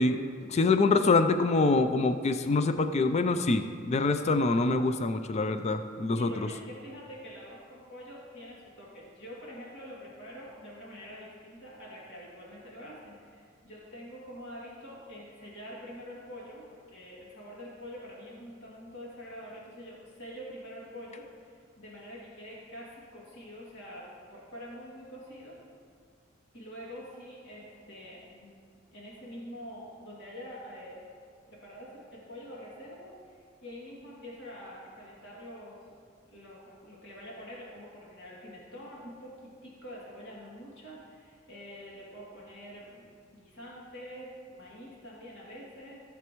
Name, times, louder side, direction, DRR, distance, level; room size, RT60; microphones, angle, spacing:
voice 1, 0.0-6.5, left 3 dB, 35° left, 9 dB, 0.4 m, -25 dB
voice 2, 6.1-25.6 26.5-31.0 31.5-36.0 36.3-46.0, equal, 70° left, -6 dB, 2.4 m, -46 dB
15.5 x 7.3 x 3.0 m, 2.1 s
head